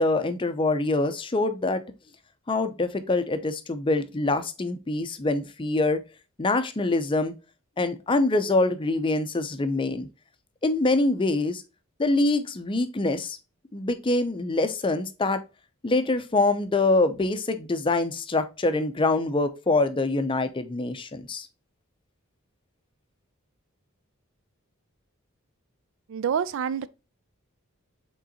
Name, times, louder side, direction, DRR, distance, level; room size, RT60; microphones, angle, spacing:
voice 1, 0.0-1.8 2.5-6.0 6.4-7.3 7.8-10.1 10.6-11.6 12.0-13.4 13.7-15.4 15.8-21.5, left 2 dB, 25° left, 0.5 m, -25 dB
voice 2, 26.1-26.9, right 7 dB, 60° right, 0.3 m, -27 dB
5.0 x 3.7 x 2.8 m
head